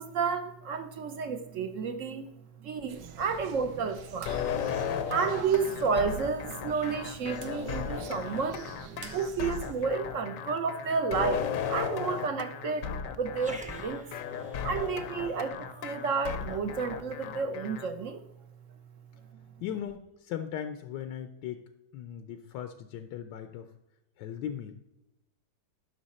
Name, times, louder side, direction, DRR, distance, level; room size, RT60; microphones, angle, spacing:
voice 1, 0.0-2.3 2.6-4.3 5.1-8.7 9.1-14.1 14.6-18.3, right 5 dB, 65° right, 9 dB, 0.8 m, -31 dB
sound 1, 2.9-9.9, right 6 dB, 85° right, 1.5 m, -46 dB
Thriller action music videogame Indie, 4.3-17.9, left 8 dB, 65° left, 0.9 m, -35 dB
Growling, 13.3-18.0, equal, 10° right, 0.4 m, -51 dB
voice 2, 19.6-23.7 24.2-24.7, left 9 dB, 85° left, 8 dB, 1.3 m, -38 dB
11.0 x 5.8 x 4.2 m, 0.98 s
omnidirectional pair, 1.9 m